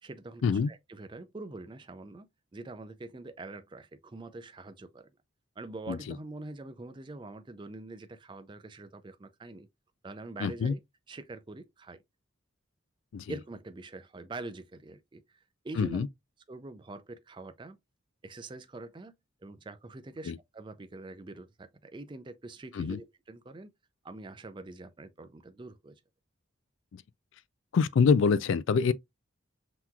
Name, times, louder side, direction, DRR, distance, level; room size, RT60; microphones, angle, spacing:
voice 1, 0.0-2.3 2.5-5.1 5.6-9.7 10.0-10.8 11.1-12.0 13.3-16.1 16.5-17.8 18.2-19.1 19.4-23.7 24.0-25.9, right 2 dB, 25° right, 0.4 m, -44 dB
voice 2, 10.4-10.7 13.1-13.3 15.8-16.1 20.3-20.4 22.7-23.0 27.7-28.9, left 5 dB, 65° left, 0.3 m, -25 dB
5.8 x 2.9 x 2.3 m
head